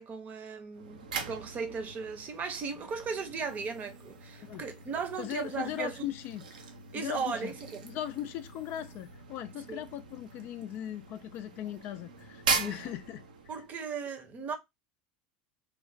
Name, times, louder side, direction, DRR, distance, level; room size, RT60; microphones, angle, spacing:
voice 1, 0.0-6.1 6.9-7.9 9.7-9.8 12.6-12.9 13.5-14.6, right 5 dB, 40° right, 0.7 m, -37 dB
sound 1, 0.7-13.7, right 5 dB, 80° right, 0.5 m, -40 dB
voice 2, 5.2-6.4 6.9-7.5 7.8-13.2, left 12 dB, 50° left, 0.3 m, -38 dB
3.1 x 2.0 x 2.5 m
hypercardioid pair, 75°, 4 cm